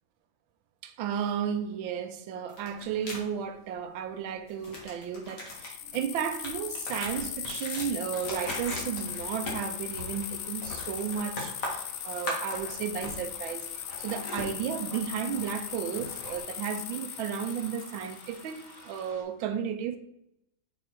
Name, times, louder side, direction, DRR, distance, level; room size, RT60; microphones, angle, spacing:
voice 1, 0.8-20.0, right 8 dB, 90° right, 1.5 m, -34 dB
sound 1, 2.5-3.2 4.5-13.5 13.7-16.4, left 1 dB, 45° left, 2.1 m, -40 dB
sound 2, 5.5-19.0, left 10 dB, 70° left, 1.2 m, -39 dB
sound 3, 8.9-19.2, equal, 10° left, 1.9 m, -52 dB
6.6 x 4.5 x 4.3 m
omnidirectional pair, 2.1 m